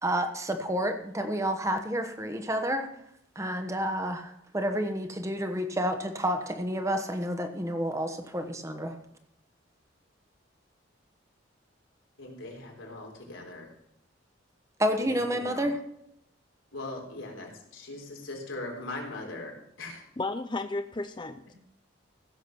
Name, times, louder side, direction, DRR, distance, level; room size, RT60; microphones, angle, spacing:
voice 1, 0.0-2.9 3.3-9.0 14.8-15.8, equal, 15° right, 6 dB, 1.2 m, -30 dB
voice 2, 12.2-13.7 15.1-15.7 16.7-20.0 21.4-21.5, left 2 dB, 90° left, 0 dB, 4.0 m, -40 dB
voice 3, 20.2-21.5, left 2 dB, 25° left, 8 dB, 0.6 m, -33 dB
15.5 x 7.2 x 6.1 m, 0.75 s
head